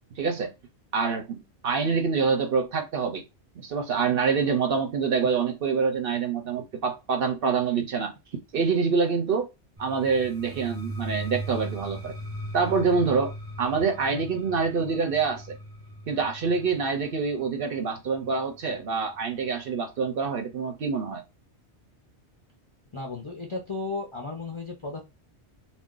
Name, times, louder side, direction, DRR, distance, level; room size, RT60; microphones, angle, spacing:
voice 1, 0.2-0.5 0.9-3.2 3.6-8.1 8.5-9.5 9.8-12.2 12.5-13.3 13.6-15.6 16.1-21.2, right 5 dB, 60° right, 0.8 m, -26 dB
sound 1, 9.8-19.6, right 1 dB, 15° right, 0.5 m, -39 dB
voice 2, 22.9-25.0, left 3 dB, 40° left, 0.5 m, -34 dB
2.5 x 2.1 x 3.6 m
omnidirectional pair, 1.2 m